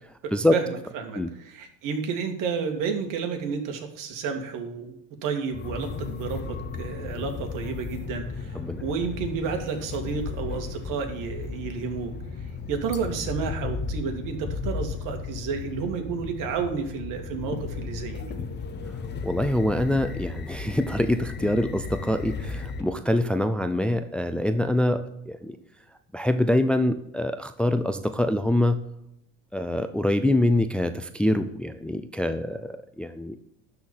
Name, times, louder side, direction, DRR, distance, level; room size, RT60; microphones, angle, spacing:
voice 1, 0.2-5.0 5.2-12.2 12.7-18.4, right 5 dB, 60° right, 5 dB, 2.2 m, -31 dB
sound 1, 5.5-22.8, left 5 dB, 30° left, 1.2 m, -35 dB
voice 2, 19.2-25.6 26.1-28.8 29.5-33.4, left 1 dB, 5° left, 10 dB, 0.5 m, -25 dB
12.0 x 4.3 x 7.2 m, 0.79 s
supercardioid pair, 100°, 36 cm